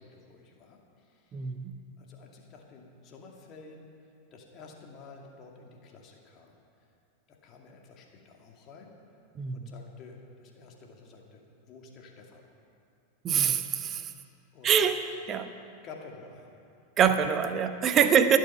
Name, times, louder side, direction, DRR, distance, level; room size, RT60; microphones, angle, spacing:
voice 1, 0.0-1.5 2.0-6.6 7.3-8.9 9.5-12.4 14.5-14.7 15.8-16.6 17.5-18.2, left 4 dB, 35° left, 1 dB, 2.3 m, -50 dB
voice 2, 1.3-1.7 9.3-9.7 13.2-14.1 14.6-15.0 15.3-15.5 17.0-18.4, right 8 dB, 30° right, 9 dB, 0.9 m, -24 dB
23.0 x 7.7 x 5.8 m, 2.6 s
figure-of-eight pair, 90°, 0 cm